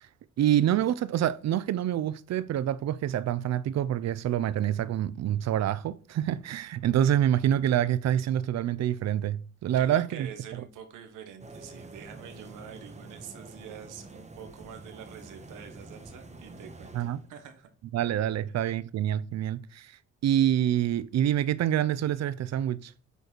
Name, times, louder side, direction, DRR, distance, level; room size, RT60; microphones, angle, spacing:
voice 1, 0.4-10.3 16.9-17.2 17.9-19.9 20.2-22.9, right 11 dB, 60° right, 0.6 m, -26 dB
voice 2, 9.7-17.7, right 8 dB, 90° right, 1.4 m, -46 dB
sound 1, 11.4-17.3, right 2 dB, 20° right, 1.2 m, -47 dB
8.1 x 4.1 x 4.5 m
cardioid pair, 90°, 30 cm